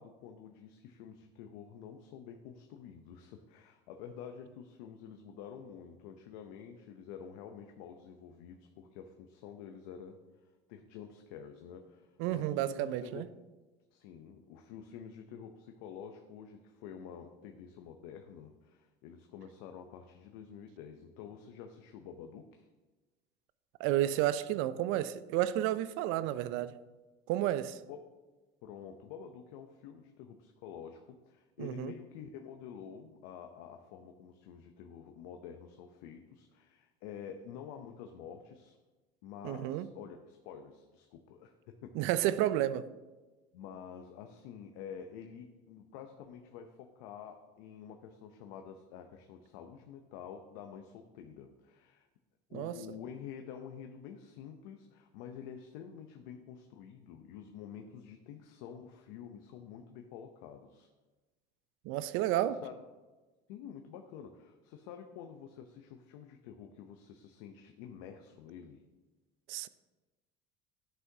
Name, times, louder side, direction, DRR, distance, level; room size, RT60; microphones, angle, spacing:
voice 1, 0.0-10.2 10.7-13.3 13.9-22.7 27.8-28.0 28.6-38.8 39.2-41.9 43.5-52.1 52.5-60.9 62.3-62.7 63.5-68.8, left 8 dB, 80° left, 0.6 m, -48 dB
voice 2, 12.2-13.3 23.8-26.7 27.3-27.8 31.6-31.9 39.4-39.9 42.0-42.9 52.5-52.8 61.8-62.6 69.5-69.7, right 13 dB, 70° right, 0.4 m, -31 dB
11.0 x 5.9 x 2.7 m
supercardioid pair, 100°, 21 cm